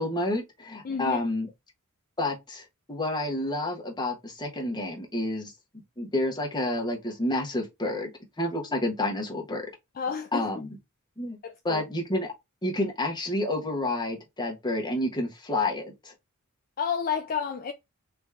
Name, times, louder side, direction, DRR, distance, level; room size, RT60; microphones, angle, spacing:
voice 1, 0.0-1.5 2.2-5.5 6.0-8.1 8.4-9.7 10.3-10.7 11.2-11.4 11.6-12.3 12.6-16.1, left 1 dB, 20° left, 1.2 m, -29 dB
voice 2, 0.8-1.2 10.0-10.5 11.4-11.8 16.8-17.7, left 6 dB, 40° left, 0.5 m, -30 dB
3.5 x 3.0 x 3.5 m
head